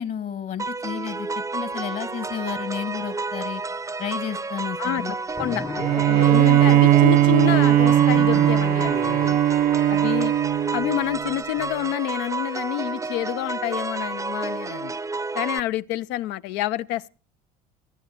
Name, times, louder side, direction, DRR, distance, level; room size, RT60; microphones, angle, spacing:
voice 1, 0.0-3.6 4.0-5.1, left 8 dB, 50° left, 1.5 m, -32 dB
sound 1, 0.6-15.6, right 3 dB, 15° right, 0.7 m, -31 dB
voice 2, 4.8-9.4 9.9-10.3 10.7-14.9 15.3-17.1, left 14 dB, 65° left, 0.6 m, -28 dB
sound 2, 5.4-9.3, left 3 dB, 15° left, 0.8 m, -34 dB
Bowed string instrument, 5.8-11.3, right 12 dB, 50° right, 0.7 m, -18 dB
18.5 x 12.5 x 4.3 m
hypercardioid pair, 65°, 20 cm